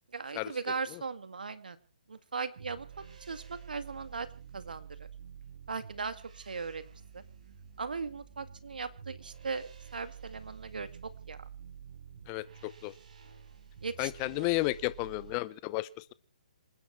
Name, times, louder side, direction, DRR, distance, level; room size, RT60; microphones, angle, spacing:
voice 1, 0.1-1.8 2.1-2.9 3.3-4.3 4.5-5.1 5.7-7.2 7.8-11.4 13.8-14.5, right 5 dB, 85° right, 2.0 m, -38 dB
sound 1, 2.6-15.4, right 7 dB, 60° right, 5.4 m, -50 dB
voice 2, 12.3-12.9 14.0-16.1, left 20 dB, 25° left, 0.8 m, -33 dB
27.5 x 9.9 x 4.6 m
hypercardioid pair, 150°, 5 cm